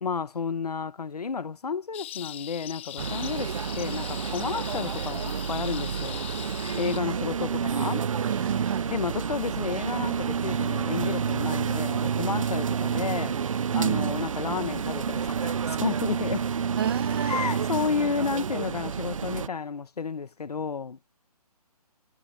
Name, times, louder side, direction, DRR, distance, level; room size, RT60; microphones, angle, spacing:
voice 1, 0.0-6.2 6.7-8.1 8.9-13.4 13.7-16.4 17.2-21.0, left 5 dB, 75° left, 1.5 m, -31 dB
sound 1, 1.9-7.0, left 13 dB, 20° left, 0.6 m, -40 dB
sound 2, 3.0-19.5, right 7 dB, 55° right, 1.1 m, -29 dB
voice 2, 8.2-8.9 13.7-14.1 16.8-17.4, right 10 dB, 40° right, 1.8 m, -31 dB
hypercardioid pair, 160°, 20 cm